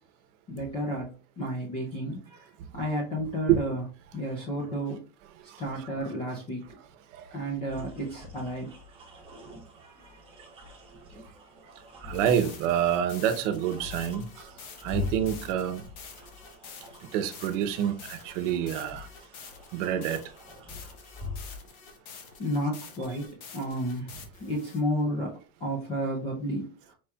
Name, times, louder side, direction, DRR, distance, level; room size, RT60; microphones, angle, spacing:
voice 1, 0.5-3.8 4.1-5.0 5.6-6.6 7.3-8.7 9.8-10.2 22.4-26.9, equal, 15° left, 0.3 m, -32 dB
sound 1, 7.7-21.6, left 3 dB, 10° right, 1.1 m, -43 dB
voice 2, 12.0-14.5 14.8-15.8 17.1-19.1 19.7-20.2, right 9 dB, 55° right, 0.8 m, -27 dB
sound 2, 12.1-24.8, left 6 dB, 50° left, 1.0 m, -48 dB
4.7 x 4.2 x 2.3 m
supercardioid pair, 170°, 43 cm